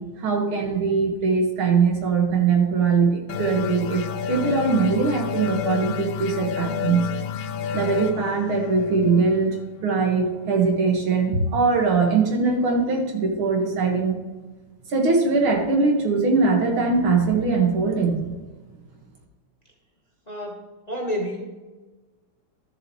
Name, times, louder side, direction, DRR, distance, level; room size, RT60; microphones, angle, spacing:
voice 1, 0.0-4.0 4.3-7.1 7.7-9.6 9.8-14.2 14.9-18.3, right 4 dB, 80° right, 1 dB, 2.4 m, -21 dB
sound 1, 3.3-10.6, left 8 dB, 75° left, 1.2 m, -30 dB
voice 2, 20.3-21.4, equal, 30° left, -1 dB, 0.9 m, -30 dB
13.0 x 7.3 x 3.1 m, 1.2 s
omnidirectional pair, 2.3 m